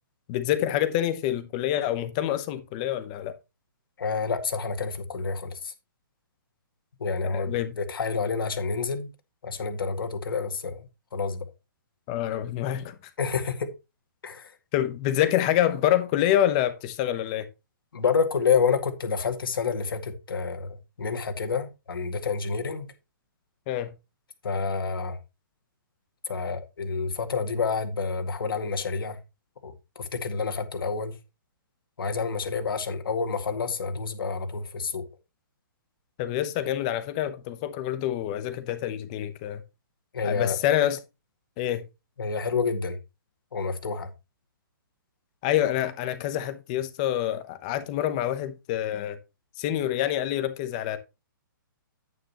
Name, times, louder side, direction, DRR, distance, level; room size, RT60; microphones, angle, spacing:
voice 1, 0.3-3.3 7.2-7.7 12.1-12.9 14.7-17.5 23.7-23.9 36.2-39.6 40.2-41.0 41.6-41.8 45.4-49.2 49.6-51.0, left 12 dB, 20° left, 0.8 m, -26 dB
voice 2, 4.0-5.7 7.0-9.1 9.4-10.8 11.1-11.4 13.2-13.7 14.2-14.5 17.9-22.9 24.4-25.2 26.3-29.2 29.6-31.1 32.0-35.0 40.1-40.6 42.2-43.0 43.5-44.1, left 5 dB, 80° left, 2.0 m, -28 dB
9.3 x 9.0 x 2.9 m
hypercardioid pair, 175°, 12 cm